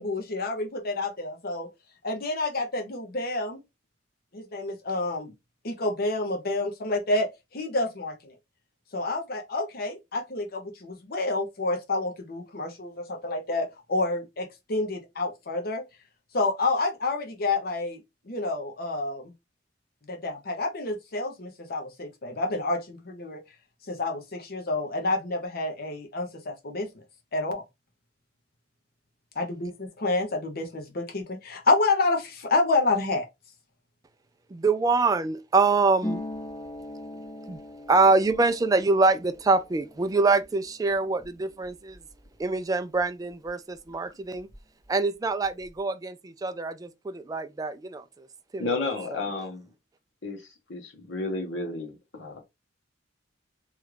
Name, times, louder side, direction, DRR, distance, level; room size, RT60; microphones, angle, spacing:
voice 1, 0.0-1.7 2.0-3.6 4.3-5.3 5.6-8.3 8.9-15.8 16.3-18.0 18.3-19.3 20.1-23.4 23.9-27.0 27.3-27.6 29.4-33.3, left 2 dB, 55° left, 0.8 m, -28 dB
voice 2, 34.5-36.2 37.5-37.6 37.9-42.0 42.4-44.5 44.9-48.3 48.5-48.9, right 3 dB, 20° right, 0.3 m, -25 dB
Harp, 36.0-43.5 43.7-44.9 45.1-45.8, left 1 dB, 20° left, 0.6 m, -41 dB
voice 3, 48.6-49.7 50.2-52.4, left 3 dB, 80° left, 1.1 m, -32 dB
3.1 x 2.4 x 3.2 m
head